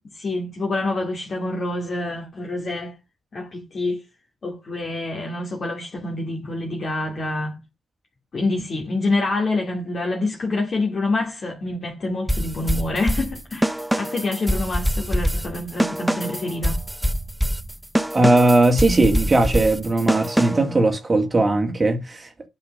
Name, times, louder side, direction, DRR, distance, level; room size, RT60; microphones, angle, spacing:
voice 1, 0.1-3.0 3.3-4.0 4.4-7.6 8.3-16.8, left 2 dB, 40° left, 2.4 m, -26 dB
sound 1, 12.3-20.8, equal, 5° right, 0.5 m, -24 dB
voice 2, 18.1-22.5, right 2 dB, 25° right, 1.9 m, -18 dB
9.0 x 5.7 x 5.3 m
cardioid pair, 90°, 0 cm